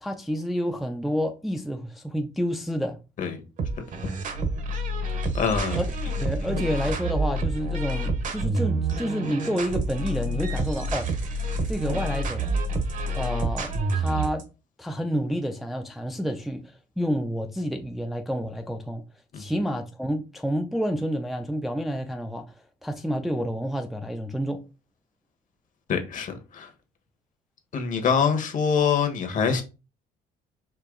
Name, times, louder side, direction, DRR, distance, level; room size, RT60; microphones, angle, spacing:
voice 1, 0.0-3.0 5.7-5.9 6.2-11.1 11.7-12.5 13.1-14.5 14.8-19.0 19.4-22.5 22.8-24.6, equal, ahead, 0.4 m, -29 dB
sound 1, 3.6-14.4, right 1 dB, 50° right, 0.9 m, -28 dB
voice 2, 5.3-5.8 19.3-19.4 25.9-26.7 27.7-29.6, left 6 dB, 50° left, 1.2 m, -24 dB
4.6 x 2.9 x 3.7 m
cardioid pair, 110°, 17 cm